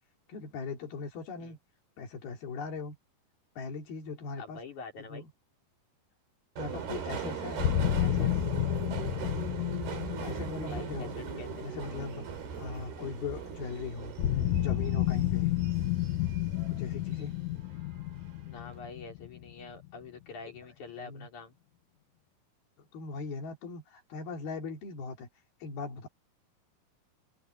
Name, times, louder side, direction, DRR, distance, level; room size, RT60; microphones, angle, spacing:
voice 1, 0.3-1.6 2.0-3.0 3.6-4.6 5.0-5.3 6.6-7.6 8.0-8.4 10.2-11.1 11.6-12.2 12.6-14.1 14.5-15.5 16.7-17.3 20.9-21.3 22.8-25.3 25.6-26.1, left 4 dB, 65° left, 4.5 m, -39 dB
voice 2, 4.4-5.2 10.7-11.7 17.7-17.8 18.5-21.6, left 4 dB, 45° left, 5.7 m, -46 dB
Subway metro underground, 6.6-17.3 17.6-18.4 18.6-18.8, right 7 dB, 65° right, 5.4 m, -40 dB
sound 1, 7.6-12.5 14.2-19.8, left 13 dB, 80° left, 1.7 m, -31 dB
omnidirectional pair, 4.9 m